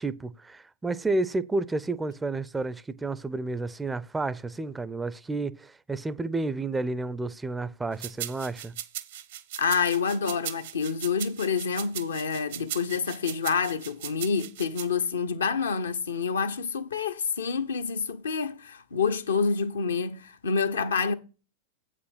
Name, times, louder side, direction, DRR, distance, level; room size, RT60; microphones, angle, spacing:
voice 1, 0.0-8.7, right 2 dB, 10° right, 0.4 m, -31 dB
sound 1, 8.0-14.9, right 12 dB, 55° right, 0.7 m, -38 dB
voice 2, 9.6-21.1, left 5 dB, 70° left, 0.7 m, -28 dB
8.2 x 5.0 x 5.7 m
figure-of-eight pair, 90°, 0 cm